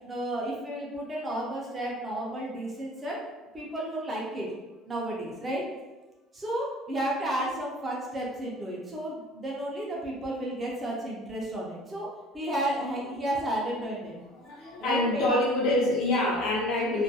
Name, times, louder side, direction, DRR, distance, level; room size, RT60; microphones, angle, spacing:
voice 1, 0.0-3.2 3.5-4.5 4.9-5.6 6.3-12.1 12.3-14.2 14.8-15.4, right 1 dB, 15° right, -4 dB, 0.4 m, -32 dB
voice 2, 14.4-17.0, left 1 dB, 55° left, -3 dB, 0.6 m, -26 dB
2.2 x 2.2 x 2.6 m, 1.1 s
cardioid pair, 175°, 0 cm